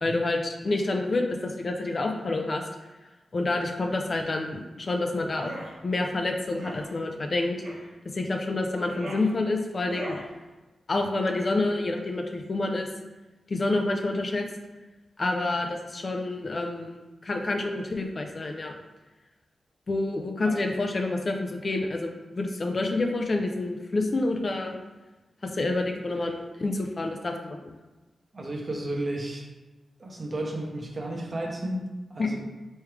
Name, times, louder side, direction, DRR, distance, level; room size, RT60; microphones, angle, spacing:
voice 1, 0.0-2.6 3.3-5.5 5.8-7.6 8.1-10.2 10.9-12.9 13.5-14.5 15.2-16.9 17.2-18.7 19.9-24.8 25.4-27.8 32.2-32.5, left 2 dB, 50° left, 3 dB, 0.5 m, -28 dB
sound 1, 5.3-5.7 6.5-6.8 7.6-7.9 8.7-9.3 9.8-10.3, right 2 dB, 75° right, 0.9 m, -40 dB
voice 2, 28.3-29.5 30.0-32.4, right 1 dB, 40° right, 0 dB, 0.8 m, -33 dB
3.5 x 3.1 x 3.2 m, 1.2 s
cardioid pair, 55°, 0 cm